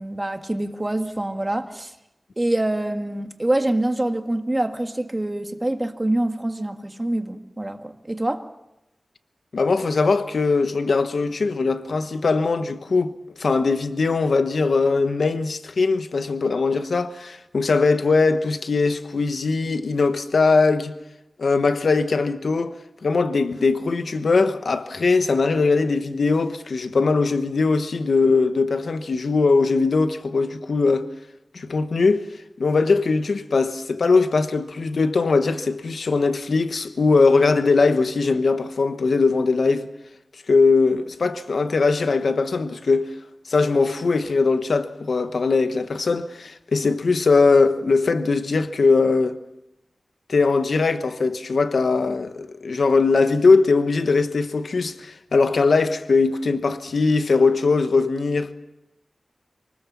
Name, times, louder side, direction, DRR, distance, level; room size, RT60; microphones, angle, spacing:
voice 1, 0.0-1.9 2.4-8.4, right 1 dB, 20° right, 1.7 m, -25 dB
voice 2, 9.5-20.9 21.4-22.7 23.0-31.1 31.5-32.3 32.6-39.9 40.5-43.1 43.5-49.4 50.3-58.5, left 4 dB, 85° left, 1.1 m, -20 dB
24.5 x 19.5 x 7.3 m
wide cardioid pair, 90°, 0 cm